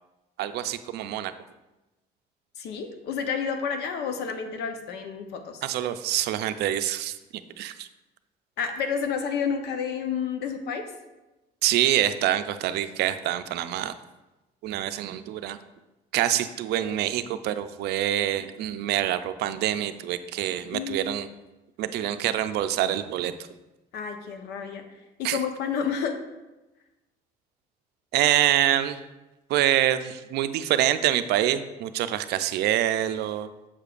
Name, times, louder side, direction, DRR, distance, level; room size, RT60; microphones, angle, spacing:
voice 1, 0.4-1.3 5.6-7.2 7.6-7.9 11.6-14.0 14.6-15.6 16.1-21.3 21.8-23.3 25.2-25.4 28.1-29.0 29.5-33.5, right 12 dB, 75° right, 11 dB, 0.4 m, -26 dB
voice 2, 2.6-5.6 8.6-10.9 20.7-21.1 23.9-24.8 25.2-26.2, left 6 dB, 80° left, 7 dB, 0.8 m, -30 dB
7.2 x 6.7 x 2.4 m, 1.0 s
cardioid pair, 110°, 17 cm